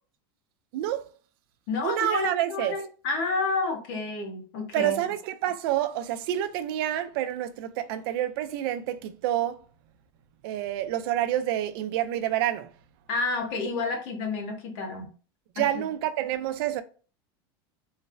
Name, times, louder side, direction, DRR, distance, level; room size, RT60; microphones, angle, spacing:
voice 1, 0.7-1.1 1.8-2.7 4.7-9.6 10.4-12.7 15.6-16.8, right 12 dB, 65° right, 0.4 m, -28 dB
voice 2, 1.7-5.0 13.1-15.1 15.6-15.7, left 4 dB, 60° left, 1.0 m, -30 dB
3.1 x 2.0 x 2.4 m
supercardioid pair, 130°, 13 cm